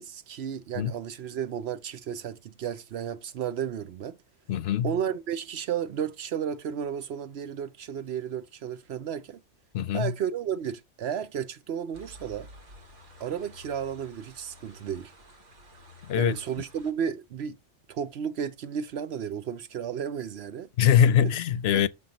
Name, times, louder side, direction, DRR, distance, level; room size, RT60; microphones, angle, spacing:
voice 1, 0.0-4.2 4.8-9.4 9.9-12.5 13.2-15.1 16.2-17.6 17.9-20.7 21.2-21.3 21.7-21.8, right 8 dB, 65° right, 0.9 m, -33 dB
voice 2, 4.5-4.9 9.7-10.1 16.1-16.4 20.8-21.9, left 9 dB, 65° left, 0.8 m, -22 dB
sound 1, 11.9-16.9, left 1 dB, 85° right, 1.9 m, -51 dB
6.9 x 4.4 x 5.2 m
omnidirectional pair, 1.2 m